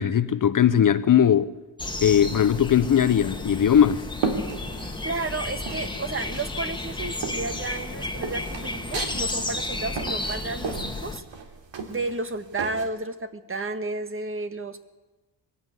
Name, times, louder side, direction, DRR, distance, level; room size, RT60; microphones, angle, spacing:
voice 1, 0.0-1.6 2.0-4.1, left 9 dB, 45° left, 0.8 m, -19 dB
sound 1, 1.8-11.2, left 2 dB, 10° left, 1.7 m, -32 dB
sound 2, 3.5-5.3 5.7-6.5 6.8-12.8, right 4 dB, 75° right, 3.3 m, -34 dB
voice 2, 5.0-11.2 11.9-14.8, right 3 dB, 30° right, 1.6 m, -32 dB
23.5 x 16.5 x 9.6 m
cardioid pair, 125°, 45 cm